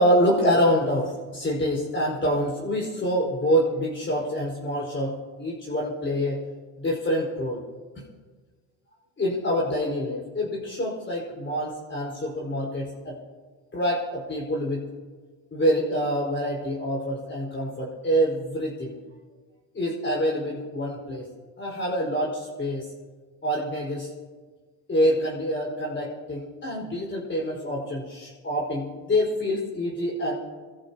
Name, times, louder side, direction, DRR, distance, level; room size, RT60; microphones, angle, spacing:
voice 1, 0.0-6.4 6.8-7.6 9.2-13.2 13.7-14.8 15.5-18.9 19.7-21.2 21.6-22.8 23.4-24.1 24.9-30.3, equal, 25° left, -4 dB, 4.8 m, -26 dB
26.5 x 14.0 x 2.9 m, 1.4 s
supercardioid pair, 90°, 48 cm